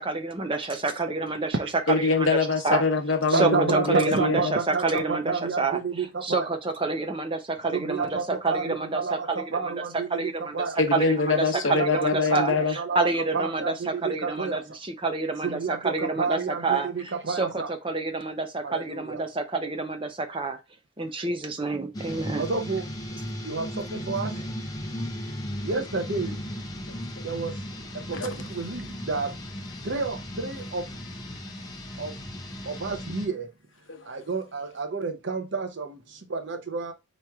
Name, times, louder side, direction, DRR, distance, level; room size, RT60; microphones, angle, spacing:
voice 1, 0.0-1.6 2.0-2.3 2.6-2.8 3.3-9.7 10.1-10.6 10.9-11.3 11.7-20.6 21.0-22.4, right 3 dB, 25° right, 0.6 m, -28 dB
voice 2, 1.9-4.6 10.8-12.8 26.9-27.0 28.1-28.3 33.9-34.1, left 4 dB, 70° left, 0.8 m, -24 dB
voice 3, 3.3-6.5 7.7-10.8 11.7-12.0 12.3-13.1 13.3-14.6 15.4-17.7 18.6-19.2 22.4-22.9 23.4-24.4 25.6-26.4 27.2-27.6 27.9-29.4 29.8-30.9 32.0-32.1 32.6-33.5 34.0-36.9, right 4 dB, 60° right, 0.8 m, -30 dB
sound 1, 21.9-33.3, equal, 20° left, 0.7 m, -36 dB
4.4 x 3.1 x 3.5 m
head